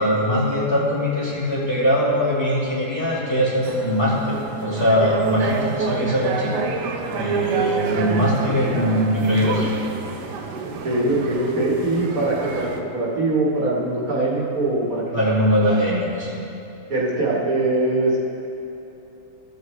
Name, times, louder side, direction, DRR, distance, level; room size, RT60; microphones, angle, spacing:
voice 1, 0.0-6.5 7.1-9.7 15.1-16.4, equal, 15° left, -9 dB, 1.8 m, -21 dB
sound 1, 3.6-12.8, right 4 dB, 90° right, 1.3 m, -29 dB
voice 2, 10.6-15.2 16.9-18.2, right 2 dB, 60° right, -4 dB, 1.8 m, -22 dB
14.5 x 7.6 x 3.2 m, 2.9 s
omnidirectional pair, 1.7 m